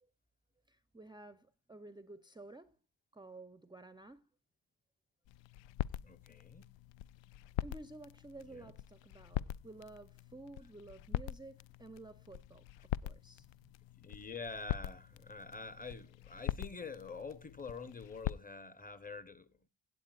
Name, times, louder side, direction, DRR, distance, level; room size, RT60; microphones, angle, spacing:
voice 1, 0.7-2.8 3.1-4.3 7.6-13.7, right 2 dB, 10° right, 0.6 m, -53 dB
sound 1, 5.2-18.4, left 13 dB, 90° left, 0.5 m, -43 dB
voice 2, 6.0-6.7 8.5-8.7 13.9-19.6, left 4 dB, 20° left, 1.0 m, -46 dB
16.5 x 8.5 x 2.4 m
cardioid pair, 125°, 43 cm